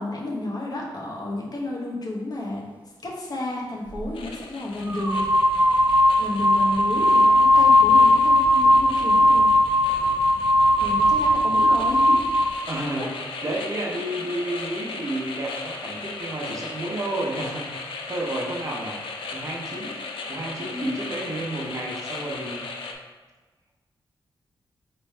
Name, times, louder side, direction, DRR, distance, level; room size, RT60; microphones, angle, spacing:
voice 1, 0.0-2.6 3.0-5.2 6.2-9.5 10.8-12.2 13.0-13.1 20.7-21.0, left 2 dB, 50° left, -2 dB, 1.0 m, -31 dB
sound 1, 3.9-4.1 4.9-12.6, left 1 dB, 20° right, 0.4 m, -18 dB
sound 2, 4.1-22.9, left 3 dB, 85° left, 0.4 m, -37 dB
voice 2, 12.7-13.1 13.4-19.0 19.3-19.9 20.3-22.7, right 1 dB, 40° right, -2 dB, 0.9 m, -31 dB
4.2 x 3.2 x 3.3 m, 1.3 s
wide cardioid pair, 95°, 9 cm